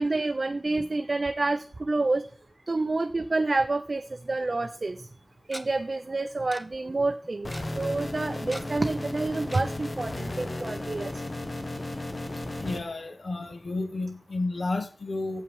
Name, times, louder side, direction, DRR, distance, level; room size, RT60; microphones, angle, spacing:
voice 1, 0.0-2.3 2.7-5.1 5.5-7.5 7.8-11.1, right 2 dB, 60° right, 8 dB, 0.6 m, -28 dB
Tick-tock, 4.6-4.7 5.5-5.6 6.5-6.6 6.9-7.0 7.2-7.6 8.5-8.9 9.5-9.6 10.1-10.2 10.5-10.6, equal, 5° left, 0.8 m, -39 dB
sound 1, 7.4-12.8, left 1 dB, 50° left, 1.3 m, -34 dB
voice 2, 12.6-15.4, left 2 dB, 85° left, 7 dB, 1.1 m, -31 dB
7.8 x 5.7 x 6.9 m, 0.40 s
wide cardioid pair, 60°, 0 cm